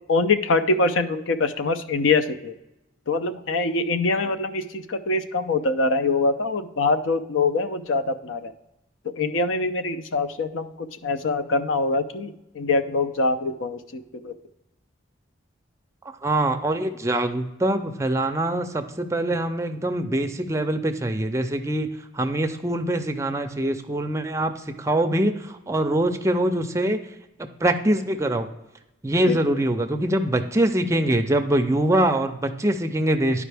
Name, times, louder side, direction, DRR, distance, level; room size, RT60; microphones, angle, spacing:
voice 1, 0.1-2.5 3.1-8.5 9.2-14.3 29.3-29.4, left 3 dB, 80° left, 10 dB, 0.6 m, -24 dB
voice 2, 16.2-21.9 22.1-24.5 24.8-27.0 27.6-28.5 29.0-33.4, right 1 dB, 15° right, 6 dB, 0.4 m, -23 dB
11.0 x 4.9 x 3.4 m, 0.93 s
head